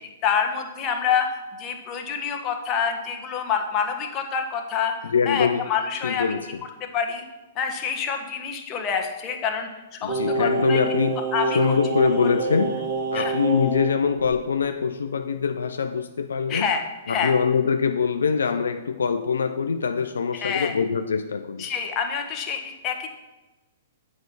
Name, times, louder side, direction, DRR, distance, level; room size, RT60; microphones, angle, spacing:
voice 1, 0.2-4.9 5.3-6.3 6.8-7.2 7.5-10.8 11.3-11.7 13.1-13.3 16.5-17.3 20.3-20.7 21.6-23.1, left 7 dB, 30° left, 3 dB, 1.3 m, -27 dB
voice 2, 5.0-5.7 6.0-6.6 10.0-11.2 11.5-12.8 13.1-16.7 17.1-21.7, left 6 dB, 80° left, 8 dB, 0.4 m, -23 dB
Singing, 10.1-13.9 14.2-14.4, right 3 dB, 55° right, 3.2 m, -27 dB
8.0 x 5.3 x 6.4 m, 1.1 s
hypercardioid pair, 120°, 0 cm